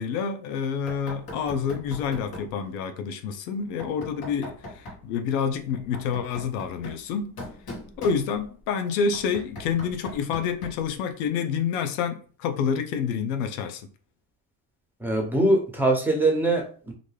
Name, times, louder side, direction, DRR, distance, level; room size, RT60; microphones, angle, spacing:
voice 1, 0.0-7.4 8.0-13.9, left 6 dB, 90° left, 0.5 m, -28 dB
Knock, 0.9-2.6 3.8-5.1 5.7-8.6 9.1-10.9, left 1 dB, 55° left, 1.3 m, -41 dB
voice 2, 15.0-16.9, right 2 dB, 5° right, 0.8 m, -22 dB
2.5 x 2.2 x 3.1 m
supercardioid pair, 80°, 44 cm